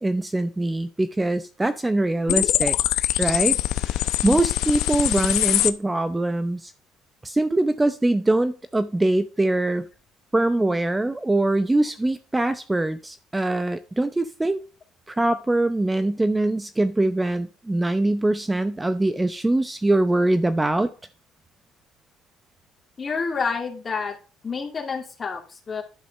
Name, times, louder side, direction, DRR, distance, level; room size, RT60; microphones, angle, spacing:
voice 1, 0.0-2.8 3.2-6.7 7.2-9.9 10.3-14.6 15.1-20.9, right 2 dB, 10° right, 11 dB, 0.7 m, -23 dB
sound 1, 2.3-5.7, left 14 dB, 80° left, 0.7 m, -23 dB
voice 2, 23.0-24.1 24.4-25.8, left 5 dB, 30° left, 1 dB, 2.5 m, -29 dB
11.5 x 5.0 x 6.5 m, 0.36 s
cardioid pair, 105°, 0 cm